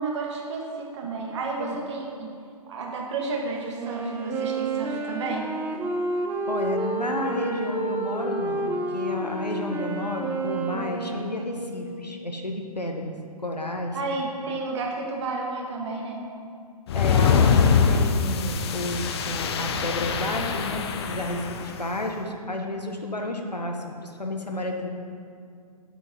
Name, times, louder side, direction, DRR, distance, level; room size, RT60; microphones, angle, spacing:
voice 1, 0.0-2.3 2.7-5.5 13.9-16.2, right 3 dB, 45° right, -1 dB, 2.1 m, -31 dB
Wind instrument woodwind instrument, 3.7-12.3, right 2 dB, 10° right, 0.6 m, -30 dB
voice 2, 6.5-8.6 8.9-13.1 13.4-14.0 16.9-24.9, left 1 dB, 90° left, 2 dB, 1.4 m, -31 dB
sound 1, 16.9-21.8, left 6 dB, 40° left, 0.7 m, -23 dB
10.0 x 7.8 x 5.5 m, 2.3 s
figure-of-eight pair, 130°, 20 cm